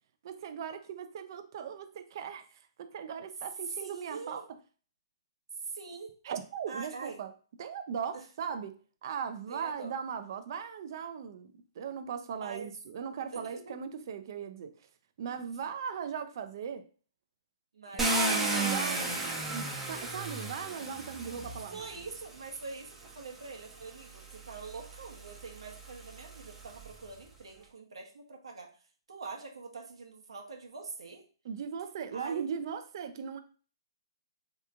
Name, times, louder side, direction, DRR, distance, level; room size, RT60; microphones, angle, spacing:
voice 1, 0.2-2.4 2.8-4.5 6.2-7.3 7.6-8.8 9.0-14.7 15.2-16.9 17.9-21.9 31.4-33.4, right 7 dB, 50° right, 0.4 m, -38 dB
voice 2, 3.8-4.4 5.7-6.1 6.7-7.2 8.1-8.3 9.5-10.0 12.4-12.7 13.3-13.8 15.3-15.4 17.7-19.1 21.7-28.7 29.1-31.2 32.1-32.5, right 4 dB, 85° right, 0.9 m, -44 dB
Car, 18.0-22.1 23.0-23.1 23.7-27.0, right 2 dB, 10° right, 0.6 m, -34 dB
3.4 x 2.9 x 2.4 m
hypercardioid pair, 150°, 3 cm